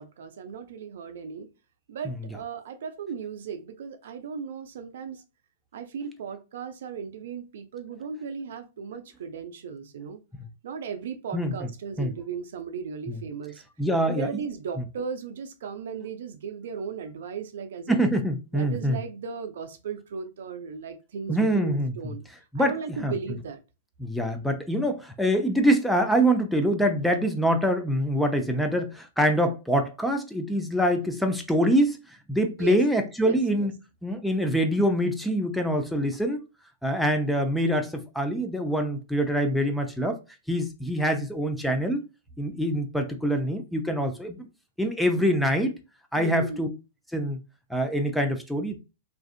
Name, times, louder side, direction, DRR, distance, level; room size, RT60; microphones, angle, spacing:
voice 1, 0.0-1.5 1.9-5.2 5.7-10.2 10.6-13.6 14.0-18.0 18.5-22.2 22.5-23.6 32.6-32.8 33.2-33.7 46.2-46.6, right 6 dB, 65° right, 0.4 m, -36 dB
voice 2, 13.8-14.4 17.9-19.0 21.3-22.1 22.5-23.1 24.0-32.0 32.3-33.7 34.0-36.4 36.8-40.2 40.5-42.0 42.4-44.5 44.8-45.7 46.1-46.7 47.1-47.4 47.7-48.8, equal, ahead, 0.4 m, -25 dB
2.5 x 2.4 x 2.4 m
hypercardioid pair, 110°, 0 cm